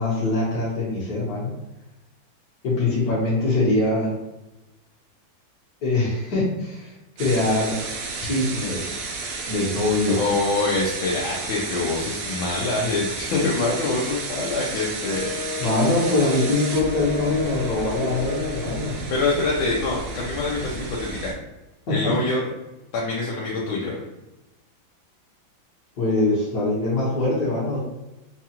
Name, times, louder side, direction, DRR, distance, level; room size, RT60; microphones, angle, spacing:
voice 1, 0.0-1.5 2.6-4.1 5.8-6.9 7.2-7.7 8.2-9.0 9.5-10.2 15.6-19.0 21.9-22.1 26.0-27.8, left 2 dB, 55° left, -6 dB, 1.6 m, -23 dB
sound 1, 7.2-21.3, right 3 dB, 70° right, 0.9 m, -32 dB
voice 2, 10.1-15.3 19.1-21.3 21.9-22.4 22.9-24.0, left 3 dB, 85° left, -4 dB, 1.5 m, -25 dB
Wind instrument woodwind instrument, 15.0-19.0, left 5 dB, 40° right, 0.5 m, -32 dB
4.7 x 2.4 x 2.9 m, 0.99 s
omnidirectional pair, 2.1 m